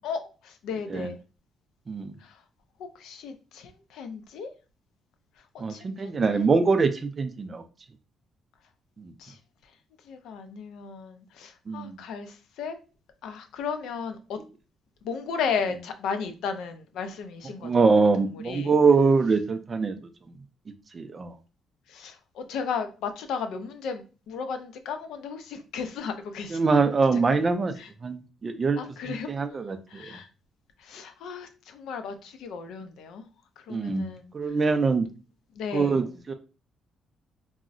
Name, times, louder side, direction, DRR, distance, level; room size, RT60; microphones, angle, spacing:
voice 1, 0.0-1.1 2.2-2.3 2.8-4.5 5.5-5.8 6.3-6.5 9.2-9.4 10.1-12.8 13.2-14.4 15.0-17.9 18.4-18.7 21.9-26.9 27.8-27.9 28.8-29.3 29.9-30.3 30.8-33.3 33.6-34.3 35.6-36.0, left 6 dB, 85° left, 0.4 m, -35 dB
voice 2, 5.6-7.6 9.0-9.1 11.7-12.0 17.6-20.0 20.9-21.3 26.5-27.7 28.0-28.8 29.0-30.0 33.7-34.1 34.3-35.1 35.7-36.3, right 4 dB, 30° right, 0.3 m, -23 dB
3.7 x 2.0 x 2.4 m
cardioid pair, 155°, 0 cm